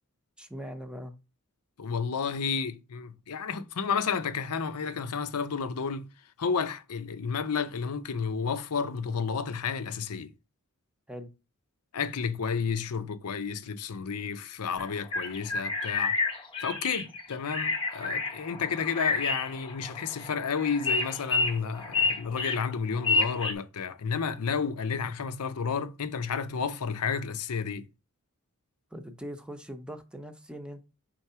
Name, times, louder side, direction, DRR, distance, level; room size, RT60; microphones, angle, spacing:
voice 1, 0.4-1.2 11.1-11.3 28.9-30.9, equal, 5° right, 0.7 m, -41 dB
voice 2, 1.8-6.1 6.4-10.3 11.9-16.2 16.6-27.9, left 6 dB, 80° left, 0.6 m, -31 dB
sound 1, 14.8-23.5, left 3 dB, 25° left, 0.9 m, -30 dB
4.7 x 3.8 x 5.5 m
head